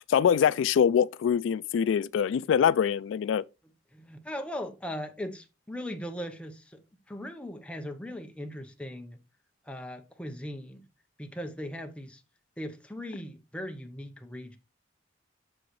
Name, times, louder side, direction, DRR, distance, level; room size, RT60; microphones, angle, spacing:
voice 1, 0.1-3.4, left 8 dB, 80° left, 0.3 m, -24 dB
voice 2, 3.9-6.8 7.1-9.2 9.6-10.9 11.2-12.2 12.6-14.6, equal, 5° left, 0.8 m, -39 dB
7.7 x 6.3 x 3.1 m
head